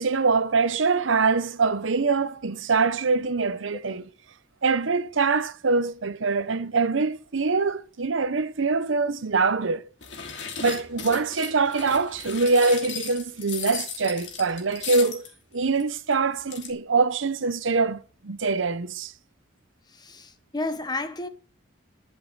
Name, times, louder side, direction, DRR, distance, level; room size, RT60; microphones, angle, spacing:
voice 1, 0.0-4.1 4.6-9.8 10.6-15.3 15.5-19.1, right 4 dB, 80° right, 0.8 m, -24 dB
sound 1, 10.0-15.3 15.8-15.9 16.1-16.2 16.4-16.7, left 6 dB, 65° left, 2.8 m, -36 dB
voice 2, 19.9-21.3, left 2 dB, 20° left, 0.9 m, -32 dB
12.0 x 5.5 x 7.7 m
head